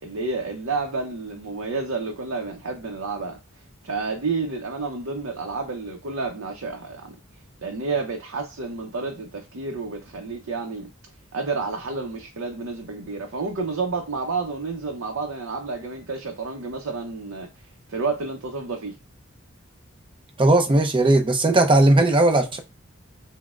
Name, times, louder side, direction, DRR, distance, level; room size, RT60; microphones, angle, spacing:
voice 1, 0.0-3.4 3.8-7.2 7.6-10.9 11.3-17.5 17.9-19.0, right 4 dB, 75° right, 0.6 m, -30 dB
voice 2, 20.4-22.6, right 2 dB, 25° right, 0.6 m, -17 dB
6.0 x 2.1 x 2.4 m
head